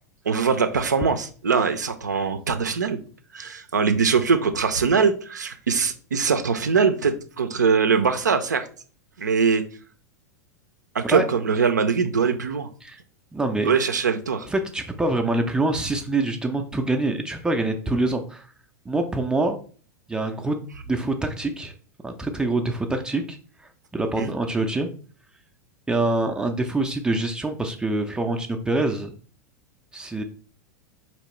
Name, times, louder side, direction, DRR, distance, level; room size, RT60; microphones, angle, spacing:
voice 1, 0.3-3.0 3.3-8.7 9.2-9.6 10.9-12.7 13.6-14.5 24.2-24.3, right 5 dB, 75° right, 0.4 m, -22 dB
voice 2, 13.3-13.7 14.4-18.5 18.9-19.6 20.1-20.6 20.9-21.7 22.0-24.9 25.9-29.1 29.9-30.2, right 2 dB, 10° right, 0.4 m, -25 dB
4.1 x 3.0 x 3.0 m
figure-of-eight pair, 90°, 10 cm